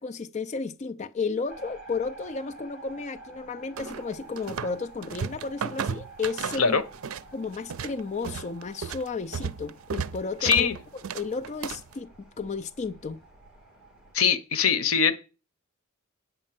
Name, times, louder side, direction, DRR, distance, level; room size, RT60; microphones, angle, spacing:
voice 1, 0.0-6.8 7.3-10.7 11.1-13.2, left 4 dB, 35° left, 0.5 m, -33 dB
sound 1, 1.5-14.2, right 3 dB, 5° right, 3.1 m, -49 dB
sound 2, 3.8-4.8 5.0-7.3 7.5-11.9, right 6 dB, 80° right, 0.5 m, -34 dB
voice 2, 10.4-10.8 14.1-15.2, left 6 dB, 85° left, 0.9 m, -22 dB
8.8 x 5.3 x 7.5 m
head